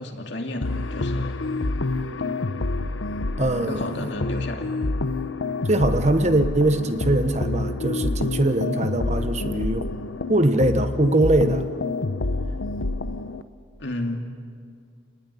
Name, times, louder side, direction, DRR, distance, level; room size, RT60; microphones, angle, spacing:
voice 1, 0.0-1.4 3.7-4.7 13.8-14.2, left 1 dB, 60° left, 3 dB, 2.6 m, -32 dB
sound 1, 0.6-13.4, left 2 dB, 75° left, 1.0 m, -27 dB
voice 2, 3.4-4.1 5.6-9.9 10.3-11.6, right 1 dB, 35° right, 9 dB, 1.1 m, -22 dB
29.0 x 19.0 x 10.0 m, 2.2 s
head